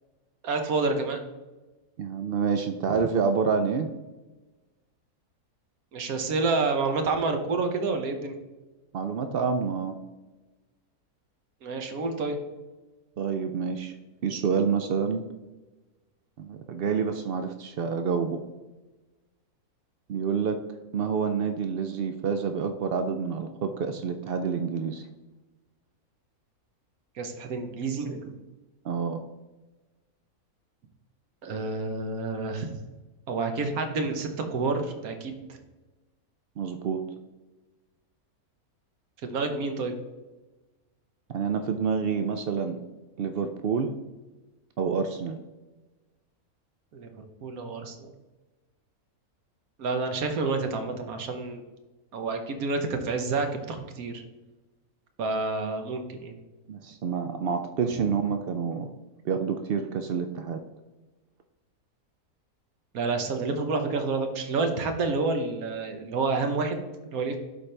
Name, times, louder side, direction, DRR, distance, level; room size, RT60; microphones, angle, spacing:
voice 1, 0.4-1.2 5.9-8.3 11.6-12.4 27.1-28.3 31.4-32.7 33.3-35.6 39.2-39.9 46.9-48.1 49.8-51.6 52.1-54.2 55.2-56.3 62.9-67.4, right 3 dB, 70° right, 6 dB, 1.3 m, -29 dB
voice 2, 2.0-3.9 8.9-10.0 13.2-13.9 14.2-15.3 16.4-18.4 20.1-20.6 20.9-25.0 28.8-29.2 36.6-37.0 41.3-42.8 43.2-43.9 44.8-45.4 56.7-58.9 59.2-60.6, right 6 dB, 90° right, 7 dB, 0.5 m, -28 dB
11.5 x 4.3 x 3.3 m, 1.2 s
omnidirectional pair, 1.6 m